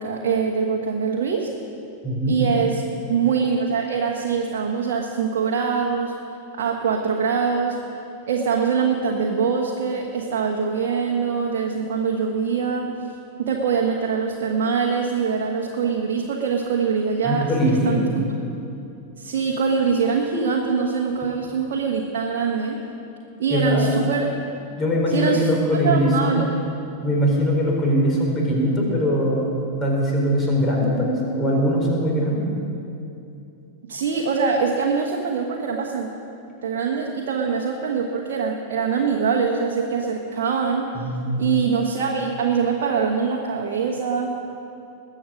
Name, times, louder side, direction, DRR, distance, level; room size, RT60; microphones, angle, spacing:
voice 1, 0.0-1.5 2.3-2.8 3.1-6.1 6.6-7.8 8.3-13.0 13.4-18.0 19.2-22.8 23.4-24.3 25.1-25.5 25.8-26.4 33.9-36.1 36.6-40.9 41.4-44.3, right 6 dB, 55° right, 0 dB, 1.3 m, -23 dB
voice 2, 2.0-2.4 17.2-18.0 23.5-24.0 24.8-26.3 27.0-29.5 29.8-32.5 40.9-41.4, equal, 20° left, -2 dB, 4.3 m, -21 dB
21.0 x 7.9 x 6.3 m, 2.7 s
figure-of-eight pair, 90°, 0 cm